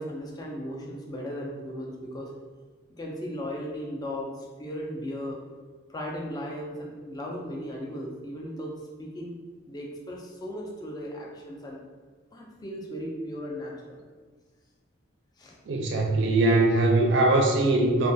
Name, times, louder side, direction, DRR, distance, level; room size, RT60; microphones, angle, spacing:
voice 1, 0.0-2.3 2.9-5.4 5.9-8.7 9.0-9.4 9.7-11.8 12.3-14.0 15.4-15.6, equal, 20° left, -2 dB, 0.3 m, -36 dB
voice 2, 15.7-18.1, right 2 dB, 60° right, 1 dB, 0.4 m, -21 dB
2.2 x 2.2 x 2.6 m, 1.5 s
head